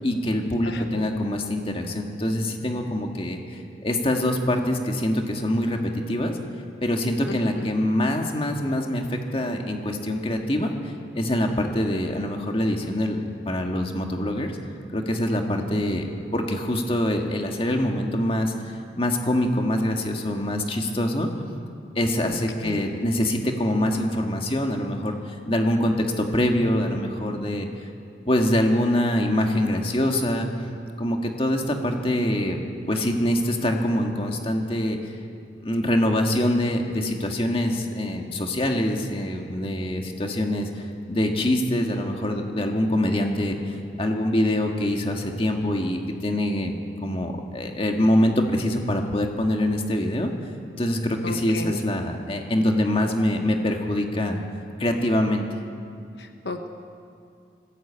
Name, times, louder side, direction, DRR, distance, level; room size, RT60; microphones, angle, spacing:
voice 1, 0.0-6.4 6.8-14.5 14.9-16.1 16.3-21.3 21.9-27.7 28.3-30.5 31.0-32.6 32.9-35.1 35.6-46.7 47.0-50.3 50.8-54.4 54.8-55.5, left 1 dB, 30° left, 3 dB, 1.7 m, -24 dB
voice 2, 0.6-1.1 7.3-7.7 15.7-15.8 22.2-22.9 51.2-51.8 56.2-56.7, left 2 dB, 75° left, 6 dB, 1.2 m, -35 dB
20.0 x 16.5 x 8.7 m, 2.4 s
head